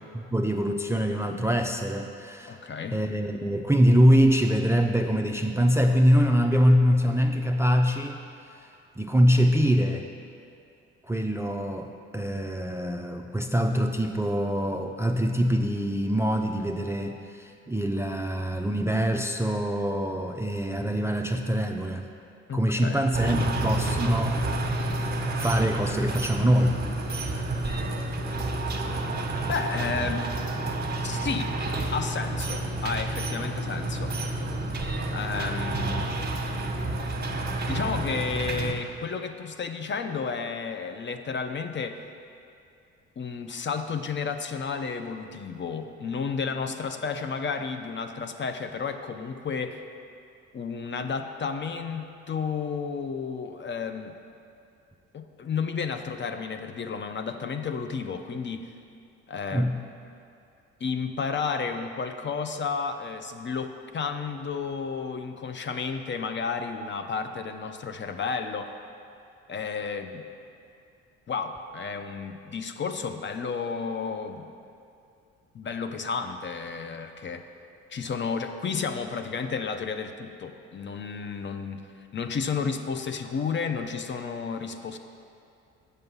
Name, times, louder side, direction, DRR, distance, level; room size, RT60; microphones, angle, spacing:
voice 1, 0.1-2.5 2.9-8.2 8.6-8.7 9.0-10.1 11.1-22.0 22.5-24.5 25.3-26.8 27.2-27.4 59.5-59.8, equal, 10° right, 4 dB, 0.5 m, -24 dB
voice 2, 2.5-3.0 22.5-23.5 29.5-30.3 31.0-31.5 31.9-34.2 35.1-36.2 37.7-42.0 43.2-49.8 50.5-54.2 55.1-58.7 59.3-59.7 60.8-68.7 69.5-70.2 71.3-74.5 75.5-77.5 77.9-81.8 82.1-85.0, left 5 dB, 35° left, 7 dB, 0.7 m, -32 dB
sound 1, 23.1-38.7, right 2 dB, 30° right, 1.3 m, -29 dB
7.8 x 6.7 x 5.5 m, 2.5 s
hypercardioid pair, 55°, 33 cm